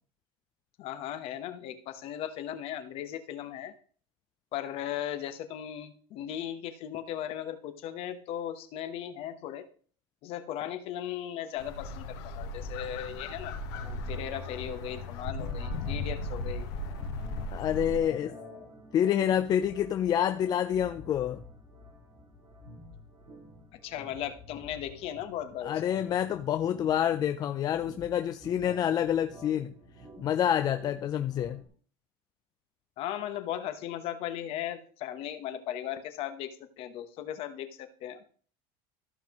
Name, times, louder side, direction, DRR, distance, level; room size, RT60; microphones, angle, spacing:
voice 1, 0.8-3.7 4.5-9.6 10.2-13.5 14.1-16.7 18.1-18.7 23.7-25.8 33.0-38.3, left 11 dB, 50° left, 9 dB, 1.1 m, -37 dB
sound 1, 11.6-18.0, left 2 dB, 85° left, 1.3 m, -36 dB
sound 2, 13.7-31.7, equal, 30° right, 2.3 m, -51 dB
voice 2, 17.5-18.3 18.9-21.4 25.6-29.7 30.2-31.6, left 10 dB, 30° left, 8 dB, 0.4 m, -27 dB
14.5 x 5.6 x 3.0 m, 0.43 s
cardioid pair, 150°, 13 cm